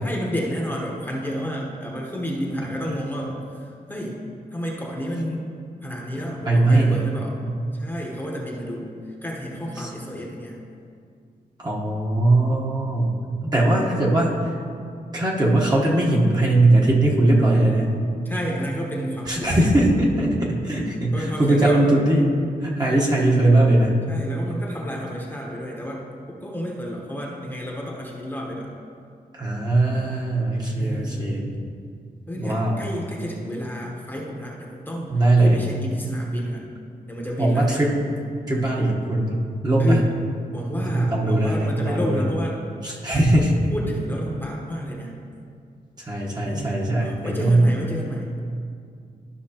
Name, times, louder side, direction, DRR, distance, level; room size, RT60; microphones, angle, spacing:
voice 1, 0.0-4.2 4.5-5.4 5.8-7.4 7.7-10.6 18.2-19.7 21.1-21.9 22.8-23.3 24.1-28.8 30.7-31.4 32.3-36.7 37.1-37.8 39.8-40.1 40.5-42.6 43.7-45.1 46.4-48.4, equal, 10° left, -3 dB, 1.0 m, -31 dB
voice 2, 6.4-7.0 9.8-9.9 11.6-13.1 13.4-14.5 15.1-17.9 19.3-22.3 22.6-24.0 29.3-31.4 32.4-32.8 35.1-35.6 37.4-38.0 38.5-40.0 40.7-42.2 42.8-43.6 46.0-47.7, right 2 dB, 25° right, -4 dB, 1.1 m, -20 dB
12.5 x 5.9 x 2.9 m, 2.3 s
wide cardioid pair, 145°, 16 cm